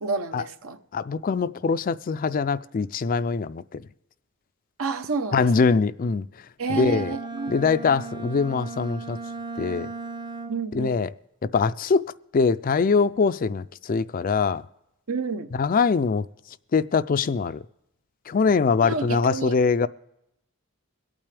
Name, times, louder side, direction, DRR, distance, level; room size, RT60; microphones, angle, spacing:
voice 1, 0.0-0.8 4.8-5.8 6.6-7.6 10.5-11.0 15.1-15.5 18.8-19.6, right 4 dB, 70° right, 0.9 m, -30 dB
voice 2, 0.9-3.8 5.3-6.3 6.7-7.1 7.5-9.2 9.6-9.9 10.7-11.1 11.4-14.6 15.6-16.3 16.7-17.6 18.3-19.9, left 5 dB, 40° left, 0.4 m, -23 dB
Bowed string instrument, 6.7-10.8, right 3 dB, 20° right, 0.5 m, -37 dB
23.5 x 8.8 x 3.4 m
head